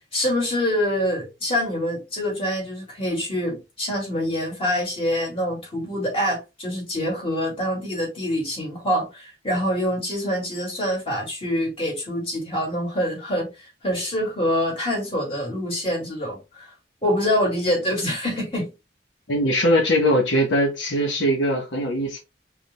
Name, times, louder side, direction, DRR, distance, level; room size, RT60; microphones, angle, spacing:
voice 1, 0.1-13.5 13.8-16.7 17.0-18.7, equal, 30° left, 2.4 m, -25 dB
voice 2, 19.3-22.2, equal, 85° left, 1.3 m, -21 dB
5.1 x 3.7 x 2.3 m
head